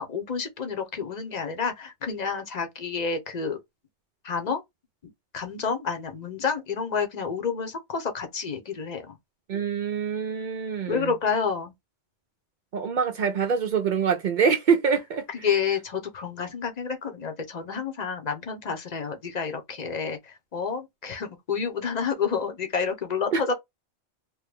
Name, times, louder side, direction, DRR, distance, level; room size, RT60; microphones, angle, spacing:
voice 1, 0.0-3.6 4.2-4.6 5.3-9.2 10.9-11.7 15.3-23.5, left 5 dB, 40° left, 0.7 m, -29 dB
voice 2, 9.5-11.1 12.7-15.2 23.3-23.4, right 6 dB, 60° right, 0.5 m, -25 dB
3.1 x 2.2 x 3.3 m
omnidirectional pair, 1.2 m